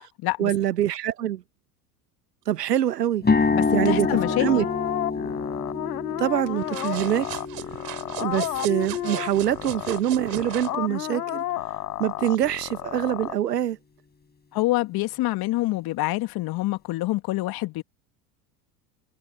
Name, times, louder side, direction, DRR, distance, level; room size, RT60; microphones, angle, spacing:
voice 1, 0.4-1.4 2.5-3.2 3.7-4.7 6.2-7.3 8.2-11.4 12.0-13.8, right 11 dB, 90° right, 1.0 m, -25 dB
sound 1, 3.2-11.2, left 4 dB, 20° left, 6.9 m, -28 dB
voice 2, 3.5-4.5 14.5-17.8, left 18 dB, 50° left, 1.9 m, -26 dB
sound 2, 4.0-13.3, left 14 dB, 75° left, 5.9 m, -32 dB
sound 3, 6.6-10.8, right 15 dB, 50° right, 5.3 m, -37 dB
hypercardioid pair, 75°, 47 cm